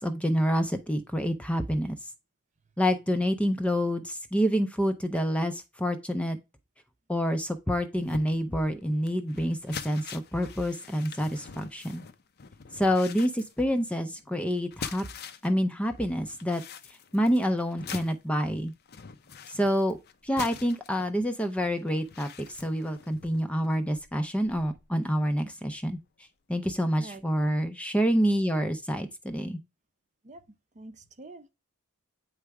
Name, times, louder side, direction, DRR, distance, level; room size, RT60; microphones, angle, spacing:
voice 1, 0.0-2.0 2.8-6.4 7.1-12.0 12.7-15.1 15.4-16.6 17.1-18.7 19.5-20.0 20.2-26.0 26.5-29.6, equal, 5° left, 0.6 m, -27 dB
sound 1, 8.0-15.6 15.9-24.9 25.3-25.4 25.8-25.9, left 6 dB, 50° left, 0.6 m, -45 dB
voice 2, 27.0-27.5 30.2-30.4 30.7-31.5, right 2 dB, 35° right, 0.8 m, -46 dB
8.8 x 3.3 x 4.8 m
head